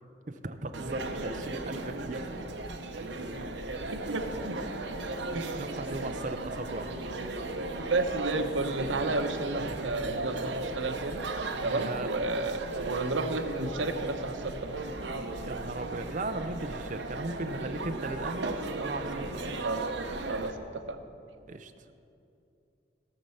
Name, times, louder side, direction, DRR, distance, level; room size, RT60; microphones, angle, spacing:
voice 1, 0.3-2.3 4.0-4.1 5.5-6.9 9.6-9.8 11.7-12.1 15.5-19.5 21.5-21.7, right 2 dB, 40° right, 8 dB, 0.6 m, -37 dB
sound 1, 0.7-20.5, right 2 dB, 65° right, 0.9 m, -36 dB
voice 2, 4.0-4.7 5.3-5.6 7.9-11.2 11.6-14.8 19.6-19.9 20.2-21.0, right 2 dB, 90° right, 7 dB, 0.9 m, -32 dB
17.0 x 6.6 x 5.7 m, 2.7 s
head